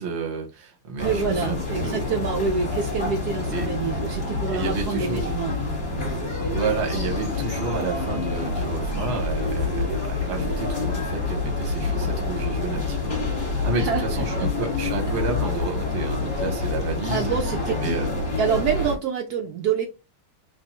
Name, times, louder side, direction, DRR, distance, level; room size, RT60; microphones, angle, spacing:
voice 1, 0.0-2.0 3.5-3.7 4.5-5.4 6.5-17.3 17.7-18.1, right 4 dB, 45° right, 2 dB, 0.9 m, -31 dB
sound 1, 1.0-19.0, left 3 dB, 30° left, 1.3 m, -27 dB
voice 2, 1.0-6.1 13.8-14.5 17.1-17.7 18.4-19.9, right 6 dB, 80° right, 2 dB, 0.8 m, -27 dB
3.5 x 2.4 x 4.1 m, 0.28 s
omnidirectional pair, 2.2 m